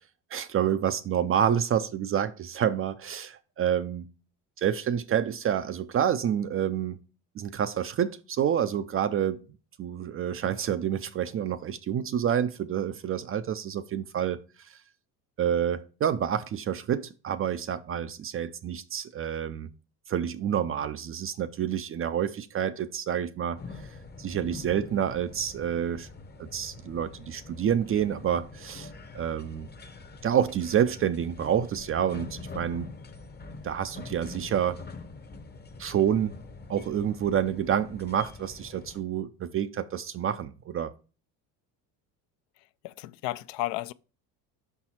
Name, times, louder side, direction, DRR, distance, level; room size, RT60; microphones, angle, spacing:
voice 1, 0.3-4.1 4.6-7.0 7.4-9.4 9.8-14.4 15.4-19.7 20.1-23.6 24.2-26.1 26.4-29.7 30.2-32.9 33.6-34.8 35.8-36.3 36.7-40.9, right 9 dB, 30° right, 0.4 m, -28 dB
sound 1, 23.6-39.0, left 3 dB, 20° left, 0.7 m, -45 dB
voice 2, 42.8-43.9, left 17 dB, 65° left, 0.5 m, -33 dB
5.5 x 4.5 x 4.2 m
hypercardioid pair, 75°, 48 cm